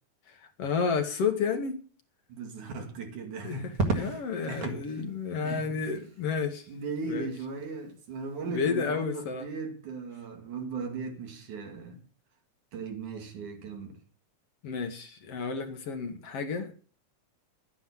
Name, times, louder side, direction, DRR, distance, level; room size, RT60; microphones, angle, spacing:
voice 1, 0.3-1.8 3.4-6.7 7.1-7.3 8.5-9.5 14.6-16.7, left 5 dB, 60° left, 2.1 m, -31 dB
voice 2, 2.3-4.9 5.4-5.8 6.7-12.0 12.7-14.0, right 4 dB, 80° right, 3.9 m, -38 dB
Crackle, 3.7-4.9 6.5-7.0, right 3 dB, 50° right, 2.7 m, -32 dB
11.5 x 9.7 x 7.2 m
omnidirectional pair, 3.4 m